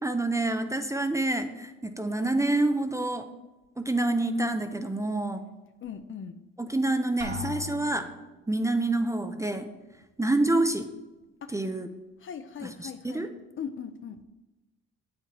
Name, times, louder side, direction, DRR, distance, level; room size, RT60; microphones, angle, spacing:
voice 1, 0.0-3.3 3.8-5.4 6.6-8.1 8.5-9.7 10.2-10.9 11.5-11.9 12.6-13.3, right 2 dB, 10° right, 7 dB, 0.4 m, -27 dB
voice 2, 5.8-6.4 11.4-11.6 12.2-14.2, left 7 dB, 40° left, 10 dB, 0.5 m, -40 dB
Drum, 7.2-8.4, left 2 dB, 55° right, 1.5 m, -38 dB
7.6 x 7.3 x 3.0 m, 1.1 s
cardioid pair, 90°, 30 cm